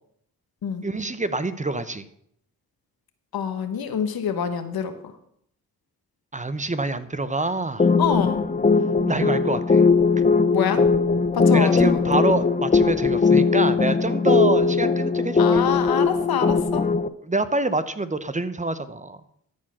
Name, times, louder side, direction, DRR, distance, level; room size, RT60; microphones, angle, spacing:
voice 1, 0.8-2.1 6.3-7.9 9.1-9.8 11.5-15.7 17.2-19.2, right 2 dB, 20° right, 12 dB, 0.7 m, -26 dB
voice 2, 3.3-4.9 8.0-8.4 10.5-10.8 11.3-11.7 15.4-16.8, left 7 dB, 75° left, 9 dB, 1.2 m, -25 dB
sound 1, 7.8-17.1, left 4 dB, 25° left, 0.6 m, -19 dB
13.0 x 4.5 x 6.1 m, 0.69 s
cardioid pair, 60°, 37 cm